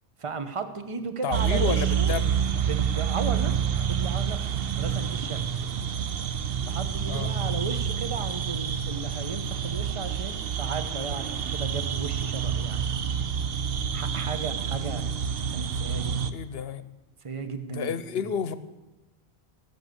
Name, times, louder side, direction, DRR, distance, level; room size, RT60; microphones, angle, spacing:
voice 1, 0.2-2.1 2.7-3.5 3.9-4.4 4.8-5.4 6.6-12.8 13.9-15.0 15.5-16.4 17.2-17.9, right 5 dB, 30° right, 9 dB, 1.0 m, -35 dB
voice 2, 1.2-2.5 7.1-7.3 16.3-17.0 17.7-18.5, left 7 dB, 70° left, 13 dB, 1.0 m, -31 dB
sound 1, 1.3-16.3, right 8 dB, 65° right, 0.9 m, -28 dB
16.5 x 7.0 x 8.0 m, 1.0 s
omnidirectional pair, 1.1 m